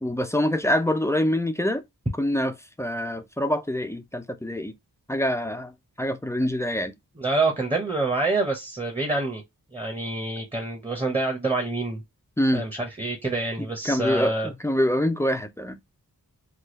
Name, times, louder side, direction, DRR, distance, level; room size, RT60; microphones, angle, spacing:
voice 1, 0.0-1.8 2.2-4.7 5.1-6.9 12.4-12.7 13.8-15.9, left 1 dB, 10° left, 0.3 m, -25 dB
voice 2, 7.2-9.4 9.7-12.0 12.5-14.5, right 2 dB, 15° right, 0.8 m, -26 dB
3.4 x 2.3 x 2.9 m
wide cardioid pair, 100°, 35 cm